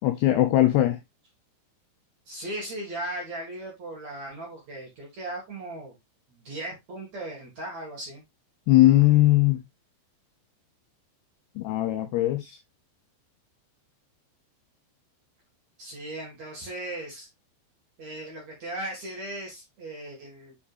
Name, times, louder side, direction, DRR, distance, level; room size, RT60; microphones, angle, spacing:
voice 1, 0.0-1.0 8.7-9.6 11.6-12.6, left 15 dB, 80° left, 2.4 m, -20 dB
voice 2, 2.3-6.0 6.3-8.2 15.8-17.3 18.0-20.6, right 1 dB, 50° right, 2.3 m, -37 dB
8.6 x 4.6 x 2.4 m
omnidirectional pair, 5.4 m